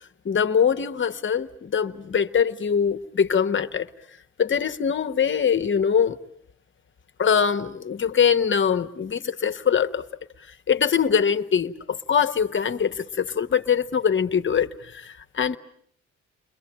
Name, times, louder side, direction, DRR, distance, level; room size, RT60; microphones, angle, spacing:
voice 1, 0.2-3.9 4.4-6.2 7.2-10.0 10.7-15.6, left 7 dB, 40° left, 1.2 m, -23 dB
29.5 x 22.0 x 8.7 m
cardioid pair, 90°, 30 cm